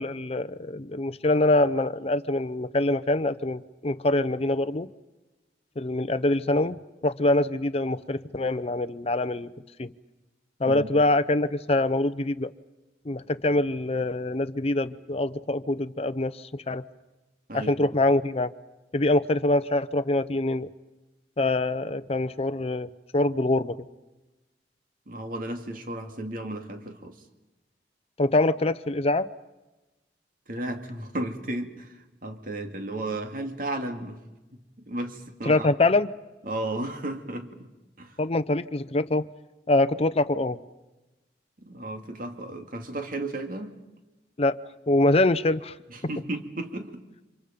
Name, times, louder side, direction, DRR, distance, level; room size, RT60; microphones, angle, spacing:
voice 1, 0.0-4.9 5.8-9.5 9.8-9.9 10.6-12.5 13.1-16.8 17.5-18.5 18.9-20.7 21.4-23.8 28.2-29.3 35.5-36.1 38.2-39.3 39.7-40.6 44.4-44.6 44.9-45.7, left 2 dB, 35° left, 13 dB, 0.7 m, -24 dB
voice 2, 17.5-18.0 25.1-27.2 30.5-34.2 34.9-35.7 36.5-37.7 38.0-38.2 41.6-43.8 45.9-47.0, right 1 dB, 50° right, 5 dB, 2.3 m, -34 dB
29.5 x 27.0 x 5.2 m, 1.1 s
head